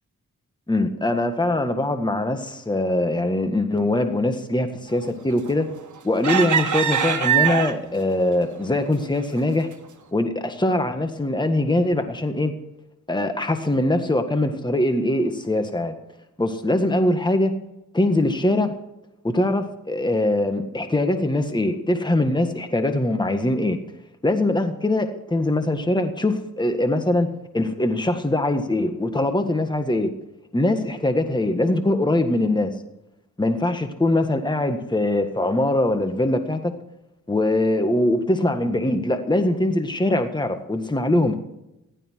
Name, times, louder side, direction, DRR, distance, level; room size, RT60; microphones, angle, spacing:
voice 1, 0.7-5.7 6.0-9.7 10.1-12.5 13.1-15.9 16.4-17.5 17.9-18.7 19.2-23.8 24.2-30.1 30.5-32.7 33.4-36.8 37.3-41.4, left 1 dB, 10° left, 7 dB, 1.6 m, -22 dB
sound 1, 5.4-5.8 6.2-8.0 8.6-8.8 9.2-9.4, right 8 dB, 55° right, 1.8 m, -22 dB
15.5 x 12.0 x 4.6 m, 0.89 s
cardioid pair, 60°, 36 cm